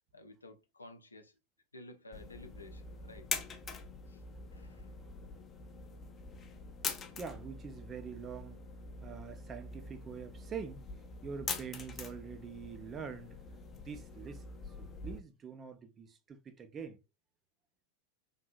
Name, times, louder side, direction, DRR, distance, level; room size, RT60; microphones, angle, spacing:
voice 1, 0.1-1.3 1.7-3.3 4.1-4.2 4.5-4.9, left 2 dB, 80° left, 0.6 m, -53 dB
sound 1, 2.1-15.2, left 4 dB, 20° left, 0.5 m, -44 dB
voice 2, 7.2-8.6 9.0-10.9 11.2-13.4 13.7-17.0, right 6 dB, 25° right, 0.5 m, -45 dB
3.4 x 2.6 x 2.4 m
figure-of-eight pair, 90°, 0 cm